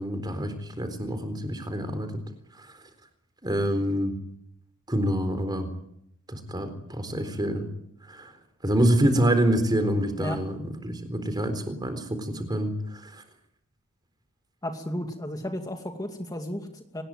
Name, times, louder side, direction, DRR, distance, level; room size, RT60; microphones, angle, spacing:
voice 1, 0.0-2.1 3.4-4.1 4.9-5.7 6.3-7.7 8.1-8.3 8.6-10.6 10.8-13.2, right 1 dB, 20° right, 9 dB, 4.0 m, -26 dB
voice 2, 14.6-17.0, left 1 dB, 15° left, 4 dB, 2.4 m, -33 dB
24.5 x 20.0 x 9.1 m, 0.75 s
head